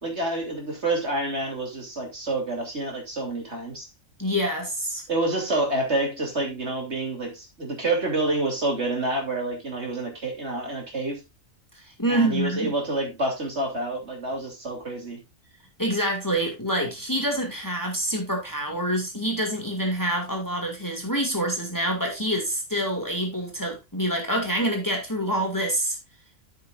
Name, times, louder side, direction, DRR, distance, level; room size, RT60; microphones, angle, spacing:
voice 1, 0.0-3.9 5.1-11.2 12.1-15.2, right 2 dB, 50° right, 3.4 m, -28 dB
voice 2, 4.2-5.0 11.8-12.7 15.8-26.0, right 1 dB, 15° left, 2.2 m, -26 dB
13.0 x 6.7 x 2.5 m
omnidirectional pair, 1.4 m